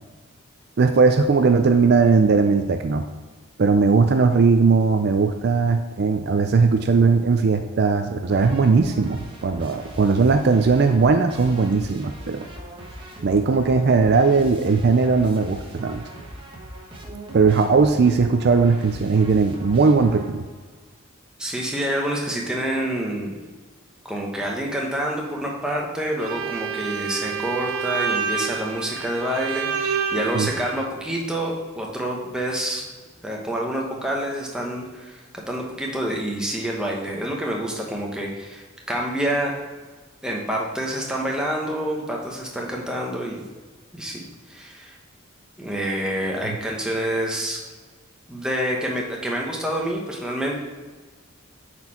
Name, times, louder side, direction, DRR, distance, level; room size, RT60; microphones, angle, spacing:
voice 1, 0.8-3.1 3.6-12.4 13.2-16.0 17.3-20.4 30.3-30.5, right 4 dB, 50° right, 6 dB, 0.4 m, -18 dB
sound 1, 8.3-20.7, right 1 dB, 25° right, 1.2 m, -40 dB
voice 2, 21.4-23.3 24.0-32.8 33.2-39.6 40.2-43.4 43.9-44.2 44.5-45.0 45.6-47.6 48.3-50.6, right 1 dB, 5° right, -2 dB, 1.0 m, -27 dB
Bowed string instrument, 26.2-30.9, right 6 dB, 85° right, 0.7 m, -28 dB
8.0 x 4.4 x 4.3 m, 1.3 s
head